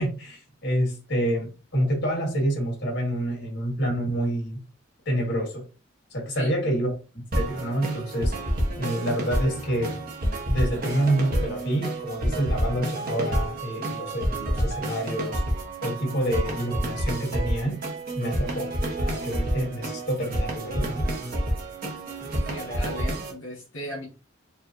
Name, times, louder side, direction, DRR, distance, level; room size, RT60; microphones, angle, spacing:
voice 1, 0.0-4.6 5.1-5.6 6.1-6.9 7.1-8.3 8.8-10.0 10.5-15.4 15.8-17.8 18.2-18.7 19.0-21.1, right 1 dB, 60° left, -1 dB, 2.0 m, -27 dB
sound 1, 7.3-23.3, right 1 dB, 50° right, 1.1 m, -29 dB
voice 2, 22.3-24.1, equal, 80° left, -4 dB, 1.5 m, -36 dB
4.6 x 2.6 x 2.7 m, 0.32 s
head